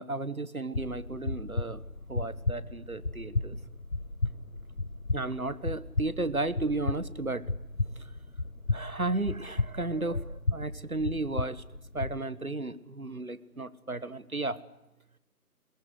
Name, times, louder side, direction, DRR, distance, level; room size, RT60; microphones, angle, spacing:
voice 1, 0.0-3.5 5.1-7.5 8.0-8.1 8.7-11.6 11.9-14.6, right 2 dB, 65° right, 17 dB, 1.5 m, -34 dB
sound 1, 0.7-12.2, left 2 dB, 55° left, 1.2 m, -34 dB
22.0 x 21.5 x 8.1 m, 0.92 s
figure-of-eight pair, 175°, 46 cm